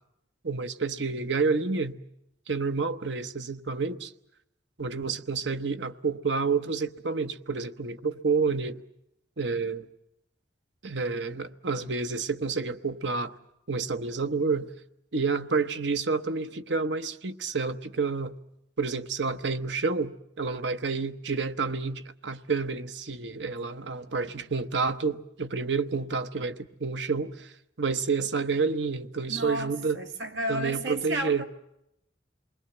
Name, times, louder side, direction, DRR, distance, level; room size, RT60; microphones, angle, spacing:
voice 1, 0.4-2.0 2.5-4.1 4.8-8.8 9.4-9.9 10.8-13.3 13.7-14.7 15.1-18.3 18.8-30.0 30.5-31.4, right 4 dB, 70° right, 1.0 m, -29 dB
voice 2, 29.3-31.5, right 1 dB, 90° right, 2.5 m, -32 dB
28.0 x 21.0 x 7.8 m
head